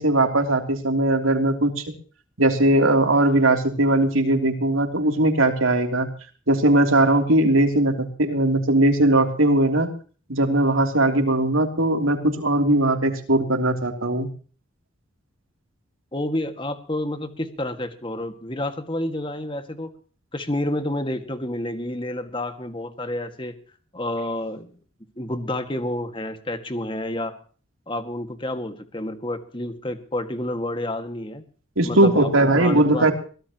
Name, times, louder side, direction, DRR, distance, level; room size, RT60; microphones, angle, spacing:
voice 1, 0.0-1.8 2.4-6.1 6.5-9.9 10.3-14.3 31.8-33.1, right 1 dB, 90° right, 5 dB, 3.2 m, -19 dB
voice 2, 16.1-19.9 20.3-23.6 23.9-24.7 25.2-27.4 27.9-31.4 31.8-33.1, left 1 dB, 25° left, 8 dB, 1.9 m, -29 dB
23.0 x 17.0 x 3.0 m, 0.40 s
head